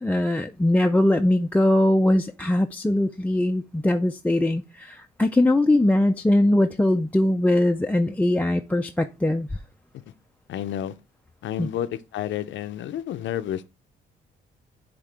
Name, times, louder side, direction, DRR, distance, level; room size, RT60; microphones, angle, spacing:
voice 1, 0.0-9.5 11.6-11.7, left 1 dB, 5° left, 0.4 m, -21 dB
voice 2, 10.5-10.9 11.4-13.7, left 11 dB, 70° left, 0.5 m, -30 dB
9.9 x 3.6 x 3.3 m
cardioid pair, 90°, 20 cm